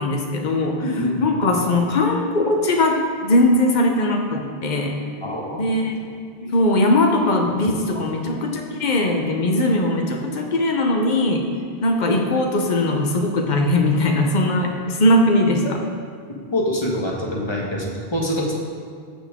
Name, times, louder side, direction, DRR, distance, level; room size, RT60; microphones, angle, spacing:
voice 1, 0.0-0.8 1.2-5.0 5.6-6.0 6.5-11.5 11.8-15.6, left 1 dB, 50° left, 2 dB, 1.0 m, -20 dB
voice 2, 0.8-1.6 5.2-5.6 6.4-6.5 7.6-8.0 15.6-15.7 16.5-18.5, left 1 dB, 25° left, -3 dB, 1.4 m, -25 dB
13.5 x 5.9 x 3.6 m, 2.1 s
omnidirectional pair, 1.0 m